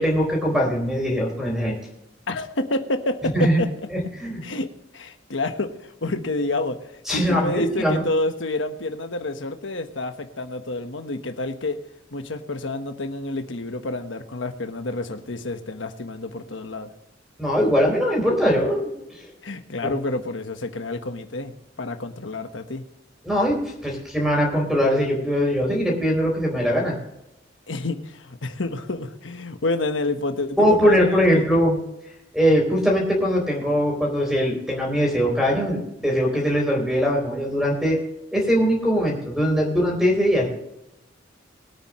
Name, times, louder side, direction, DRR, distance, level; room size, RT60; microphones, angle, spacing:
voice 1, 0.0-1.8 3.3-3.6 3.9-4.4 7.1-8.1 17.4-18.9 19.8-19.9 23.2-23.6 23.8-26.9 30.6-31.8 32.3-38.0 38.3-40.5, equal, ahead, -1 dB, 4.0 m, -21 dB
voice 2, 2.3-3.7 4.4-11.8 12.1-16.9 19.4-22.8 27.7-31.4, left 2 dB, 75° left, 7 dB, 1.2 m, -29 dB
22.5 x 8.8 x 3.1 m, 0.88 s
head